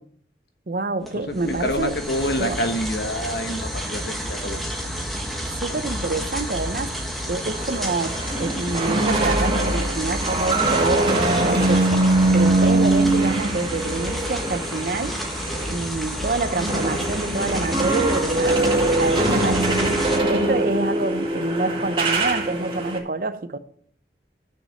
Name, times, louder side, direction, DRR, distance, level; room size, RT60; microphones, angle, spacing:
voice 1, 0.7-1.9 2.4-2.6 5.4-6.9 7.3-15.2 15.7-18.6 19.0-20.0 20.3-23.6, right 3 dB, 50° right, 0.7 m, -27 dB
sound 1, 1.0-20.2, equal, ahead, 1.6 m, -30 dB
voice 2, 1.3-4.9 19.6-20.0, left 1 dB, 65° left, 1.2 m, -28 dB
sound 2, 7.4-15.8 16.1-23.0, right 2 dB, 30° right, 2.1 m, -22 dB
10.5 x 6.4 x 7.1 m
head